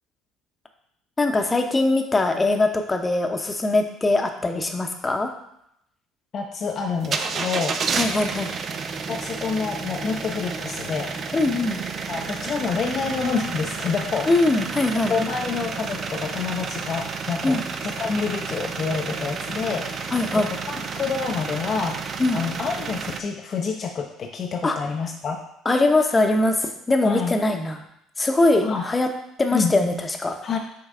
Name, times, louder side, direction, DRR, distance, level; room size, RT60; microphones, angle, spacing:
voice 1, 1.2-5.3 7.9-8.5 11.3-11.8 14.3-15.1 17.4-17.6 20.1-20.5 22.2-22.4 24.6-24.8 25.6-27.8 28.2-29.1 29.4-30.4, left 2 dB, 25° left, 5 dB, 0.8 m, -21 dB
voice 2, 6.3-7.8 9.1-11.2 12.1-14.7 14.9-22.0 22.3-25.4 27.0-27.3 28.4-28.8 29.5-29.7 30.4-30.6, left 5 dB, 45° left, 2 dB, 0.6 m, -28 dB
sound 1, 7.0-23.2, right 5 dB, 45° right, 0.5 m, -31 dB
6.4 x 3.9 x 3.7 m, 0.78 s
hypercardioid pair, 60°, 0 cm